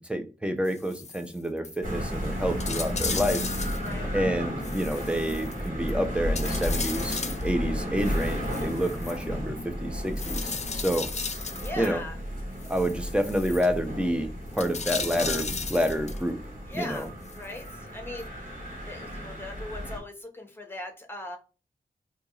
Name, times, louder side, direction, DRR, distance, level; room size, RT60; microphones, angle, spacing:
voice 1, 0.1-3.4 4.1-11.1 11.7-12.0 12.7-16.4 16.7-17.1, equal, 5° right, 0.7 m, -28 dB
sound 1, 0.6-1.3 1.6-1.8 2.1-2.2 2.6-3.9 4.6-5.9 6.3-7.5 8.0-9.2 10.2-11.9 12.6-13.7 14.5-16.2 16.7-17.7 18.2-18.3, left 5 dB, 40° left, 0.5 m, -36 dB
sound 2, 1.8-20.0, equal, 50° right, 1.7 m, -33 dB
voice 2, 3.8-4.1 11.6-12.2 16.6-21.4, left 1 dB, 10° left, 1.1 m, -39 dB
2.9 x 2.6 x 3.8 m
wide cardioid pair, 70°, 18 cm